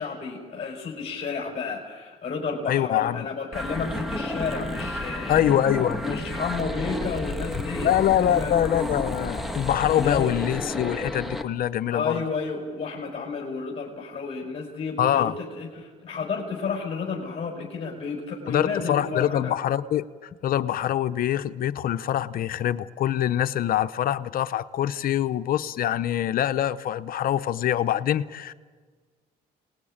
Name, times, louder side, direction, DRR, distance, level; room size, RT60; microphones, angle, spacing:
voice 1, 0.0-5.4 6.0-8.5 9.9-10.3 11.9-19.5, left 5 dB, 35° left, -1 dB, 4.9 m, -32 dB
voice 2, 2.7-3.3 5.3-6.2 7.8-12.2 15.0-15.3 18.5-28.5, left 11 dB, 60° left, 11 dB, 0.8 m, -24 dB
sound 1, 3.5-11.4, left 1 dB, ahead, 1.8 m, -31 dB
28.5 x 19.5 x 8.8 m, 1.5 s
cardioid pair, 110°, 17 cm